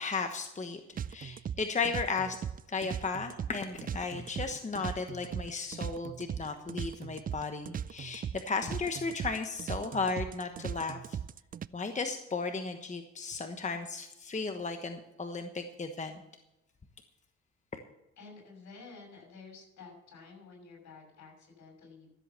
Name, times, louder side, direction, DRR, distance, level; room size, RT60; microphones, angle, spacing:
voice 1, 0.0-2.4 2.7-11.2 11.7-16.2, left 4 dB, 25° left, 6 dB, 1.1 m, -35 dB
sound 1, 1.0-11.7, right 8 dB, 30° right, 0.4 m, -38 dB
voice 2, 18.2-22.1, left 4 dB, 70° left, 1 dB, 6.4 m, -51 dB
14.0 x 7.9 x 7.0 m, 0.91 s
cardioid pair, 90°, 30 cm